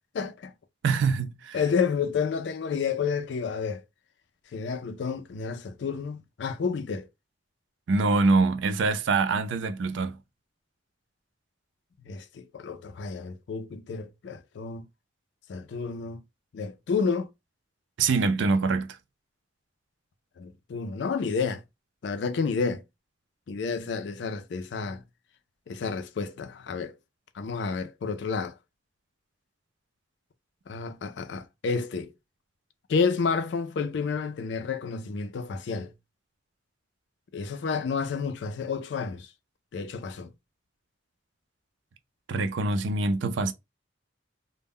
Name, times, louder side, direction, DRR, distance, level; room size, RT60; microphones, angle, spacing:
voice 1, 0.1-0.5 1.5-3.8 4.5-7.1 12.0-14.9 15.5-16.2 16.5-17.3 20.4-21.6 22.0-22.8 23.5-25.0 25.7-27.0 27.3-28.5 30.7-32.1 32.9-35.9 37.3-39.3 39.7-40.3, left 5 dB, 65° left, 0.4 m, -30 dB
voice 2, 0.8-1.6 7.9-10.2 18.0-19.0 42.3-43.5, right 3 dB, 75° right, 0.4 m, -24 dB
2.1 x 2.1 x 3.5 m
head